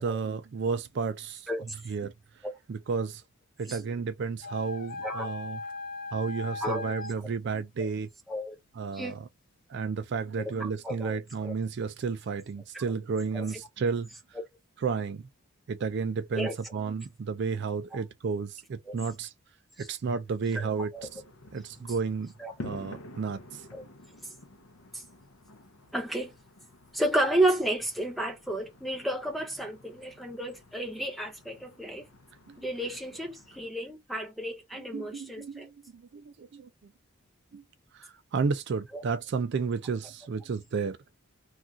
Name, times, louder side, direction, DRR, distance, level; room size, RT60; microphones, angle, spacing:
voice 1, 0.0-1.5 1.9-2.1 2.7-3.2 3.6-5.6 6.1-8.1 8.8-9.2 9.7-14.1 14.8-15.3 15.7-19.3 19.8-20.9 21.5-22.3 22.6-23.6 32.5-32.6 34.7-36.7 37.5-37.6 37.9-41.0, right 5 dB, 55° right, 0.4 m, -32 dB
sound 1, 4.4-7.1, left 3 dB, 40° left, 0.3 m, -38 dB
voice 2, 6.6-6.9 7.8-7.9 8.3-8.6 8.9-9.1 10.4-11.5 12.7-13.0 13.3-13.5 16.3-16.5 17.9-18.0 18.9-19.0 19.8-19.9 20.5-20.7 20.9-21.1 22.4-22.7 23.7-23.8 24.9-25.0 25.9-26.3 26.9-32.1 32.6-35.7 38.9-39.0, right 1 dB, ahead, 0.6 m, -32 dB
sound 2, 20.9-33.7, left 1 dB, 90° left, 0.6 m, -50 dB
2.4 x 2.3 x 3.9 m
head